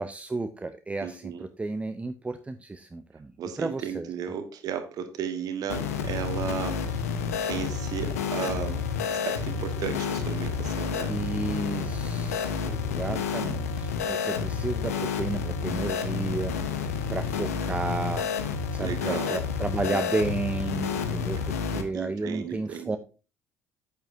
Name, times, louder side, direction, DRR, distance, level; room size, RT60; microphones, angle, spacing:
voice 1, 0.0-4.1 11.1-18.3 18.7-23.0, right 3 dB, 15° right, 10 dB, 0.7 m, -32 dB
voice 2, 1.0-1.4 3.4-7.1 7.4-11.1 13.1-13.3 18.8-19.4 19.9-20.0 21.9-23.0, right 8 dB, 50° right, 8 dB, 1.3 m, -35 dB
sound 1, 5.7-21.8, left 6 dB, 75° left, 1.1 m, -30 dB
8.9 x 8.8 x 2.7 m, 0.33 s
figure-of-eight pair, 50°, 8 cm